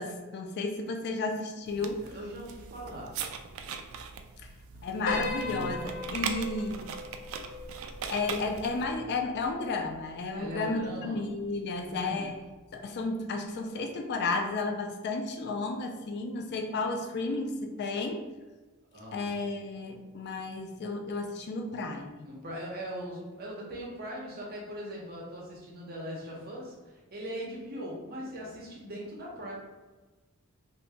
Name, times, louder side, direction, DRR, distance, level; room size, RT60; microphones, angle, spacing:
voice 1, 0.0-2.1 4.8-6.9 8.1-12.4 12.7-18.2 19.1-22.3, left 3 dB, 50° left, 3 dB, 0.4 m, -33 dB
voice 2, 1.7-3.1 5.6-5.9 10.3-11.2 11.8-12.3 18.9-19.3 22.2-29.5, equal, 45° right, -3 dB, 0.9 m, -40 dB
sound 1, 1.7-8.8, right 6 dB, 65° right, 0.3 m, -40 dB
Piano, 5.1-9.5, left 2 dB, 70° left, 0.9 m, -38 dB
2.7 x 2.6 x 3.4 m, 1.2 s
head